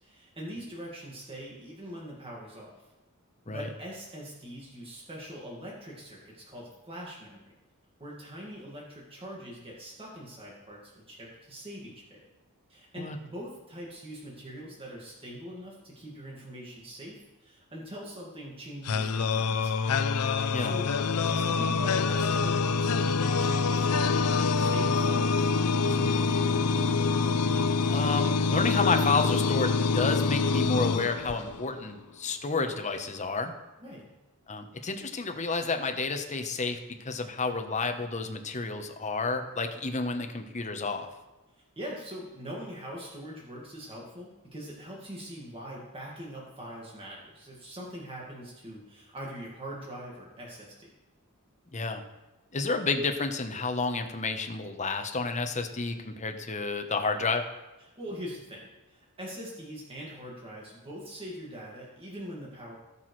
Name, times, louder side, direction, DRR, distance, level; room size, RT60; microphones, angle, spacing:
voice 1, 0.0-2.7 3.5-7.5 8.0-12.2 12.7-19.8 20.6-20.9 21.2-26.6 33.8-34.1 41.8-50.9 58.0-62.8, equal, 25° right, -4 dB, 1.9 m, -42 dB
sound 1, 18.9-31.8, left 4 dB, 85° left, 0.5 m, -26 dB
voice 2, 27.9-33.5 34.5-41.1 51.7-52.0 52.5-57.4, left 3 dB, 35° left, 6 dB, 0.9 m, -30 dB
18.0 x 6.1 x 3.2 m, 1.1 s
head